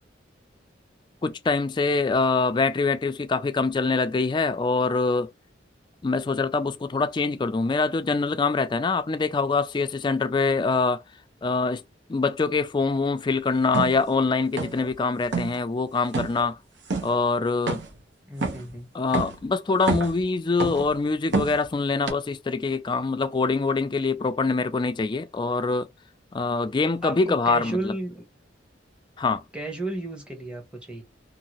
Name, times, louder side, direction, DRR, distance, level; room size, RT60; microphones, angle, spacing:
voice 1, 1.2-5.3 6.0-11.0 11.4-11.8 12.1-16.6 17.0-17.8 18.9-25.9 26.3-27.9 29.2-29.4, left 4 dB, 25° left, 0.3 m, -24 dB
sound 1, 13.7-14.0 14.6-14.9 15.2-15.6 16.1-16.4 16.9-17.1 17.7-18.0 18.4-18.7 19.1-19.4 19.8-20.2 20.6-20.9 21.3-21.7 22.1-22.2, right 3 dB, 75° right, 0.9 m, -27 dB
voice 2, 18.3-18.9 27.0-28.2 29.5-31.0, right 2 dB, 5° right, 0.9 m, -33 dB
2.7 x 2.6 x 2.9 m
head